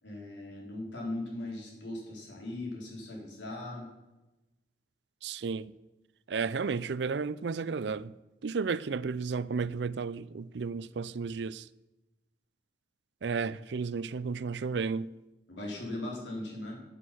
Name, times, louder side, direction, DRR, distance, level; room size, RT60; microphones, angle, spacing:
voice 1, 0.0-3.9 15.5-16.8, left 1 dB, 85° left, 4.3 m, -39 dB
voice 2, 5.2-5.7 6.3-8.1 8.4-11.7 13.2-15.1, right 5 dB, 75° right, 0.4 m, -33 dB
9.6 x 8.2 x 7.7 m
head